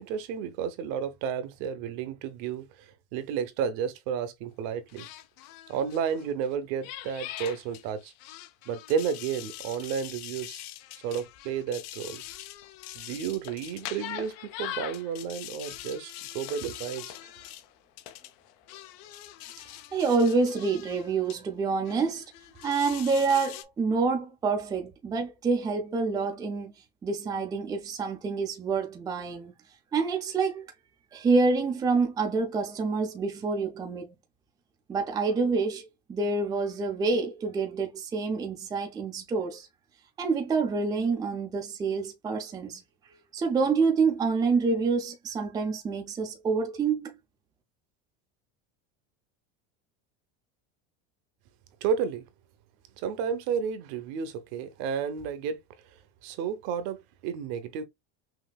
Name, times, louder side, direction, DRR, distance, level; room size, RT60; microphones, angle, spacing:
voice 1, 0.0-5.1 5.7-8.1 8.7-10.6 11.0-12.2 12.9-17.1 51.8-52.3 53.0-55.6 56.2-57.9, right 7 dB, 50° right, 0.9 m, -32 dB
sound 1, 4.9-6.5 6.8-21.4 21.8-23.6, left 14 dB, 50° left, 0.7 m, -43 dB
voice 2, 19.9-22.2 22.6-26.7 27.0-29.5 29.9-30.6 31.1-34.1 34.9-39.7 40.2-42.8 43.3-47.2, right 4 dB, 10° right, 0.5 m, -27 dB
5.8 x 2.8 x 2.3 m
cardioid pair, 170°, 33 cm